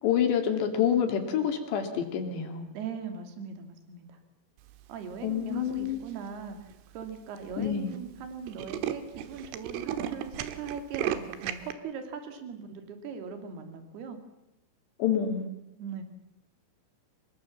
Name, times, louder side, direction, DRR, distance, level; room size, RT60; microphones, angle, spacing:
voice 1, 0.0-2.7 5.2-6.0 7.6-7.9 15.0-15.5, left 8 dB, 60° left, 5 dB, 4.0 m, -27 dB
voice 2, 2.7-4.2 4.9-14.2 15.8-16.0, right 6 dB, 55° right, 7 dB, 4.2 m, -40 dB
Tools, 5.7-6.1 6.7-6.8 7.0-7.1 7.4-7.6 7.9-8.0 8.2-11.7, right 11 dB, 80° right, 3.7 m, -34 dB
25.0 x 22.0 x 7.3 m, 0.92 s
omnidirectional pair, 5.9 m